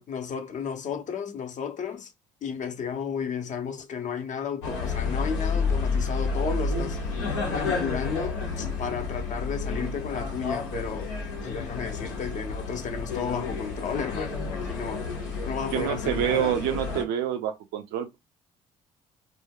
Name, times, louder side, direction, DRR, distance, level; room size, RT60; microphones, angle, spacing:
voice 1, 0.0-2.1 2.4-11.1 11.4-15.1 15.4-16.6, left 7 dB, 50° left, 0.7 m, -33 dB
sound 1, 4.6-17.0, left 4 dB, 85° left, 0.7 m, -30 dB
voice 2, 15.7-18.2, right 10 dB, 70° right, 0.6 m, -27 dB
2.2 x 2.0 x 3.4 m
hypercardioid pair, 55°, 17 cm